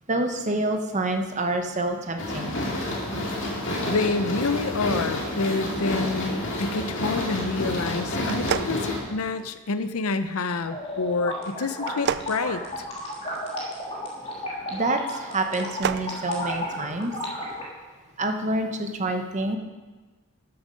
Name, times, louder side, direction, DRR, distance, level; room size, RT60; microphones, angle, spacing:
voice 1, 0.1-2.6 14.7-17.1 18.2-19.6, right 2 dB, 30° right, 5 dB, 0.9 m, -27 dB
sound 1, 2.2-9.0, left 1 dB, 55° left, 2.4 m, -29 dB
voice 2, 3.8-12.6, left 3 dB, 75° left, 11 dB, 0.6 m, -28 dB
sound 2, 8.2-9.6 11.8-13.4 15.4-16.1, right 7 dB, 50° right, 0.4 m, -31 dB
sound 3, 10.6-17.6, left 1 dB, 25° left, 2.4 m, -33 dB
13.0 x 7.1 x 5.2 m, 1.3 s
head